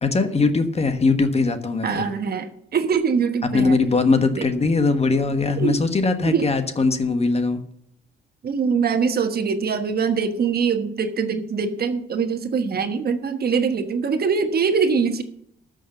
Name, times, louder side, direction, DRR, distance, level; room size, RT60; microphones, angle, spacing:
voice 1, 0.0-2.1 3.5-7.6, left 3 dB, 30° left, 8 dB, 1.3 m, -20 dB
voice 2, 1.8-3.8 4.4-4.5 5.6-5.8 6.2-6.5 8.4-15.2, right 5 dB, 50° right, 7 dB, 1.3 m, -23 dB
12.5 x 6.5 x 6.6 m, 0.71 s
cardioid pair, 90°, 20 cm